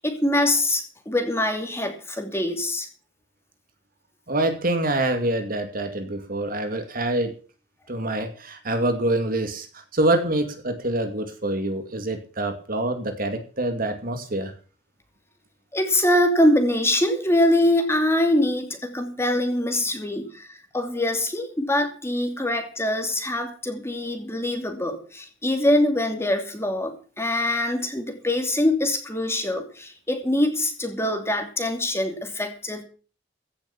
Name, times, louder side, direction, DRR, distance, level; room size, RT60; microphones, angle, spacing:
voice 1, 0.0-2.9 15.7-32.8, left 1 dB, 15° left, 5 dB, 2.8 m, -24 dB
voice 2, 4.3-7.3 7.9-9.7 9.9-14.5, right 1 dB, 50° right, 7 dB, 2.3 m, -25 dB
16.0 x 7.0 x 7.2 m, 0.39 s
head